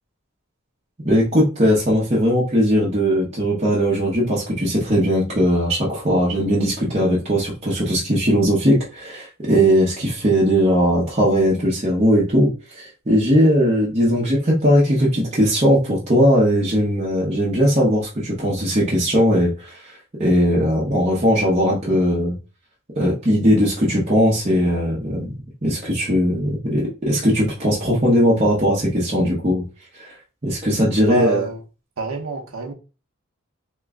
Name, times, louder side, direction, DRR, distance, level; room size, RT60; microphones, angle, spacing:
voice 1, 1.0-22.4 23.0-25.3 25.6-29.6 29.9-30.1 30.4-31.4, equal, 30° right, 0.8 m, -19 dB
voice 2, 31.0-31.6 32.0-32.7, right 4 dB, 85° right, 0.8 m, -25 dB
3.0 x 2.3 x 3.6 m
head